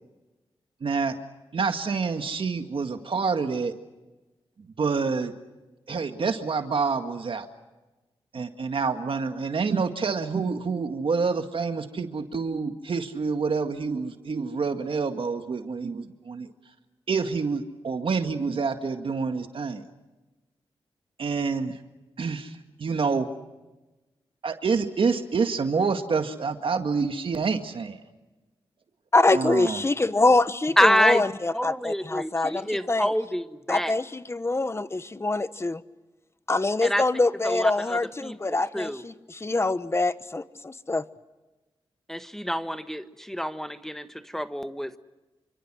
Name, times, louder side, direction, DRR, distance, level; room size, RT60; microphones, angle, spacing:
voice 1, 0.8-1.2 1.5-3.7 4.8-5.3 5.9-7.5 8.3-16.5 17.1-19.8 21.2-21.8 22.2-23.3 24.4-28.0 29.3-29.8, right 5 dB, 60° right, 7 dB, 2.0 m, -27 dB
voice 2, 29.1-33.1 33.7-35.8 36.5-41.0, left 2 dB, 25° left, 13 dB, 1.2 m, -24 dB
voice 3, 30.8-31.2 31.5-34.0 36.8-37.0 37.4-39.0 42.1-45.0, equal, 5° left, 10 dB, 1.4 m, -27 dB
28.5 x 25.0 x 6.3 m, 1.1 s
cardioid pair, 75°, 10 cm